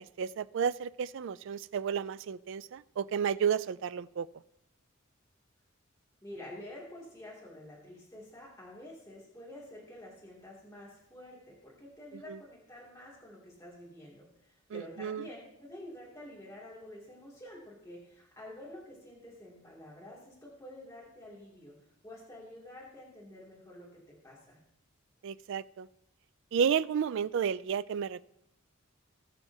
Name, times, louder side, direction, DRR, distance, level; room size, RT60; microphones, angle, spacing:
voice 1, 0.0-4.3 12.3-12.4 14.7-15.3 25.2-25.9 26.5-28.2, right 7 dB, 65° right, 16 dB, 0.3 m, -32 dB
voice 2, 6.2-21.7 22.0-24.6, left 1 dB, 15° left, -6 dB, 2.5 m, -49 dB
20.0 x 6.9 x 2.8 m, 0.83 s
head